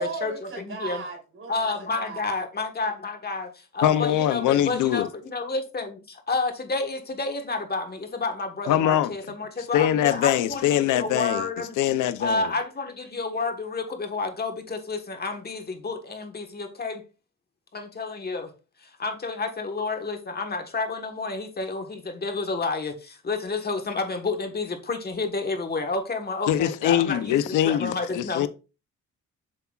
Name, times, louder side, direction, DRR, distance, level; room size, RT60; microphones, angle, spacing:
voice 1, 0.0-2.3, right 4 dB, 45° right, 3.3 m, -36 dB
voice 2, 1.5-2.9 3.2-3.4 3.8-5.0 5.3-5.8 6.3-6.8 7.2-7.8 8.2-8.3 8.6-8.9 9.7-10.3 11.0-11.5 12.2-12.6 13.2-13.8 14.1-14.5 14.9-15.3 15.8-15.9 16.8-16.9 18.3-18.4 19.0-19.5 19.8-20.1 20.5-20.9 21.2-21.8 22.2-22.9 23.3-23.8 24.2-24.6 25.2-27.2 27.7-28.5, left 3 dB, 30° left, 1.5 m, -28 dB
voice 3, 3.8-5.1 8.7-9.1 9.6-11.5 11.8-12.5 26.5-28.5, left 11 dB, 85° left, 0.7 m, -23 dB
7.6 x 7.0 x 2.4 m
cardioid pair, 90°, 30 cm